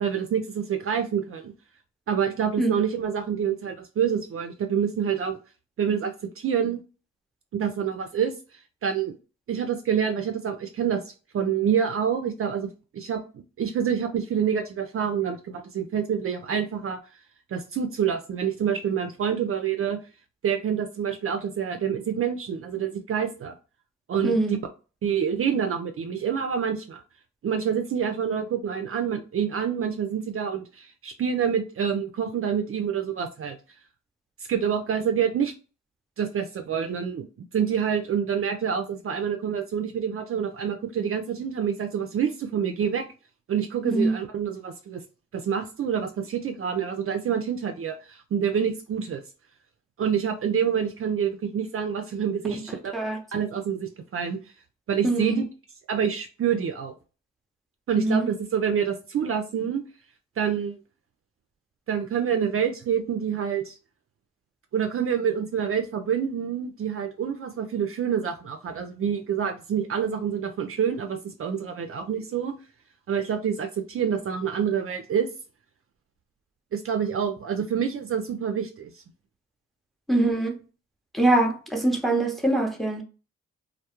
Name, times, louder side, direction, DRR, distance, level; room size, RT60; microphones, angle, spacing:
voice 1, 0.0-1.5 2.1-5.4 5.8-6.8 7.5-8.3 8.8-9.1 9.5-11.0 11.3-17.0 17.5-20.0 20.4-23.5 24.1-24.4 25.0-27.0 27.4-33.6 34.5-35.5 36.2-43.0 43.5-45.0 45.3-49.2 50.0-52.9 53.3-54.4 54.9-55.4 55.9-56.9 57.9-59.8 60.4-60.8 61.9-63.8 64.7-72.5 73.1-75.3 76.7-79.0, right 8 dB, 50° right, 0.4 m, -27 dB
voice 2, 55.0-55.4 57.9-58.3 80.1-80.5 81.1-83.0, right 2 dB, ahead, 0.7 m, -23 dB
2.2 x 2.1 x 2.8 m
cardioid pair, 55°, 30 cm